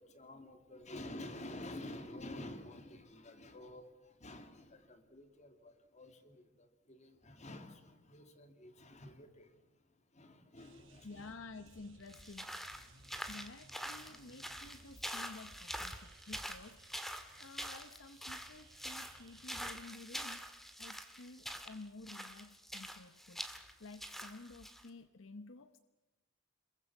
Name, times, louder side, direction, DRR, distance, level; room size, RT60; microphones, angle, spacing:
voice 1, 0.0-11.3 13.1-13.3 14.1-14.2, left 1 dB, 35° left, 2.4 m, -50 dB
sound 1, 10.6-19.5, right 3 dB, 75° right, 5.5 m, -63 dB
voice 2, 11.0-12.7 13.3-20.5 20.8-23.5 23.8-25.8, left 3 dB, 70° left, 0.9 m, -52 dB
sound 2, 12.1-24.9, equal, ahead, 1.8 m, -45 dB
27.0 x 22.0 x 7.2 m
head